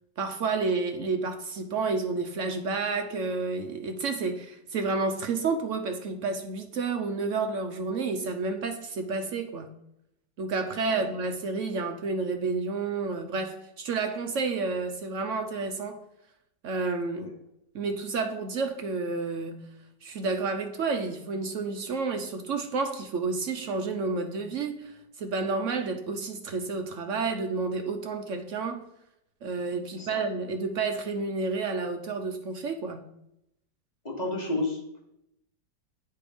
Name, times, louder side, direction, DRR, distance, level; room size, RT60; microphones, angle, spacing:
voice 1, 0.2-9.7 10.4-16.0 16.6-17.3 17.7-19.7 20.0-28.8 29.4-33.0, right 4 dB, 70° right, 0.7 m, -30 dB
voice 2, 29.9-30.2 34.0-35.0, left 2 dB, 25° left, 1.3 m, -32 dB
9.2 x 3.4 x 4.9 m
omnidirectional pair, 2.0 m